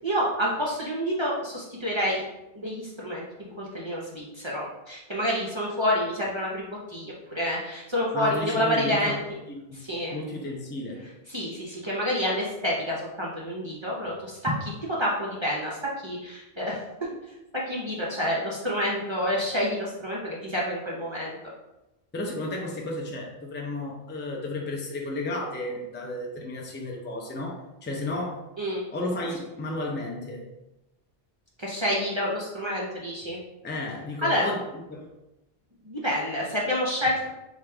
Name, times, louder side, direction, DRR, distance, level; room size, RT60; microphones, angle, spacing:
voice 1, 0.0-2.2 2.5-3.2 3.6-9.2 9.7-10.2 11.3-15.8 16.0-16.8 17.7-21.4 28.6-28.8 31.6-33.4 34.2-34.4 35.8-37.3, equal, 30° right, -5 dB, 0.6 m, -28 dB
voice 2, 8.1-9.8 10.1-11.1 22.1-28.4 28.9-30.5 33.6-34.6 34.9-35.1, left 2 dB, 15° left, -1 dB, 0.4 m, -33 dB
4.9 x 2.4 x 3.3 m, 0.96 s
omnidirectional pair, 1.1 m